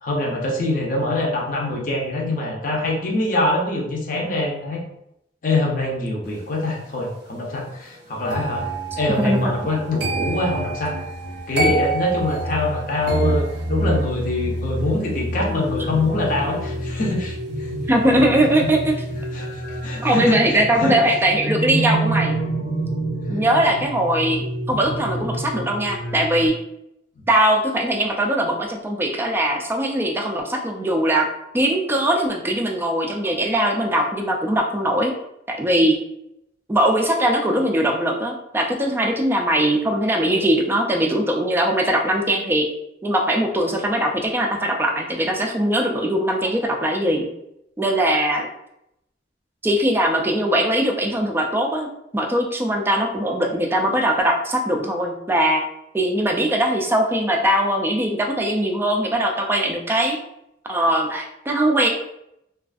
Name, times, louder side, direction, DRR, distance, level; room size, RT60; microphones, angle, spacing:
voice 1, 0.0-4.8 5.4-8.7 9.0-11.0 11.5-17.7 19.3-20.4 20.8-21.0 27.2-27.3, left 1 dB, 50° left, -1 dB, 0.6 m, -24 dB
sound 1, 8.3-19.3 19.5-19.9, right 1 dB, 75° right, 0.5 m, -28 dB
voice 2, 9.2-9.5 17.9-19.0 20.0-22.4 23.3-26.5 27.3-31.3 31.5-35.1 35.5-35.9 36.7-42.7 43.0-47.3 47.8-48.5 49.6-51.9 52.1-55.6 55.9-60.2 60.7-61.9, right 1 dB, 15° right, 2 dB, 0.3 m, -20 dB
sound 2, 15.3-26.5, right 1 dB, 85° left, 0.9 m, -28 dB
2.4 x 2.3 x 2.4 m, 0.80 s
head